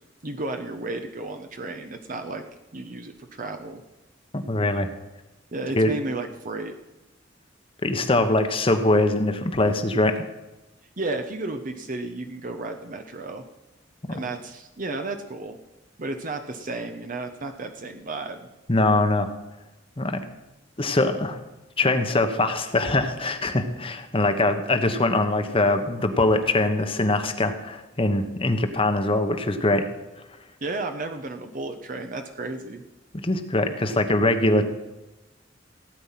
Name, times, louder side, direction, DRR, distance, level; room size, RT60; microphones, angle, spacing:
voice 1, 0.2-2.4 2.7-3.8 5.5-6.7 11.0-13.4 14.1-15.6 16.0-18.5 30.6-32.8, right 2 dB, 45° right, 6 dB, 0.9 m, -33 dB
voice 2, 4.3-4.9 5.7-5.9 7.8-10.2 14.1-14.2 18.7-19.3 20.0-20.2 20.8-21.4 21.8-29.9 33.2-34.6, left 2 dB, 30° left, 7 dB, 1.1 m, -22 dB
16.5 x 9.1 x 5.8 m, 1.0 s
head